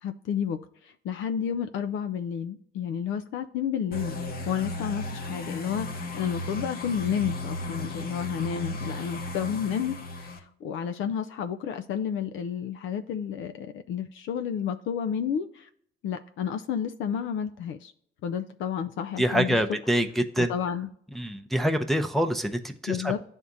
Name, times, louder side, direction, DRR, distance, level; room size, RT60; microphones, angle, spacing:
voice 1, 0.0-4.2 4.5-15.7 16.0-17.9 18.2-19.6 20.4-20.9 22.9-23.2, left 8 dB, 80° left, 0.4 m, -31 dB
sound 1, 3.9-10.4, left 2 dB, 50° left, 1.0 m, -35 dB
voice 2, 19.2-20.5 21.2-23.1, equal, ahead, 0.5 m, -26 dB
10.5 x 3.6 x 2.6 m
cardioid pair, 90°, 20 cm